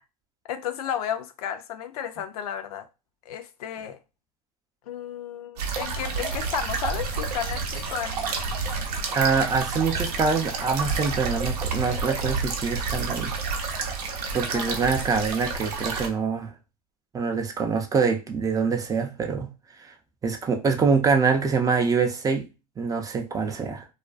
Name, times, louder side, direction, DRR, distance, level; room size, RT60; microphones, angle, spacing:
voice 1, 0.4-2.9 3.3-4.0 4.9-8.4 14.5-14.9, left 9 dB, 75° left, 0.4 m, -33 dB
sound 1, 5.6-16.1, right 4 dB, 80° right, 0.6 m, -29 dB
voice 2, 9.1-13.3 14.3-16.5 17.1-19.5 19.8-19.9 20.2-22.5 22.8-23.9, right 5 dB, 20° right, 0.4 m, -25 dB
2.4 x 2.2 x 2.3 m
hypercardioid pair, 100°, 20 cm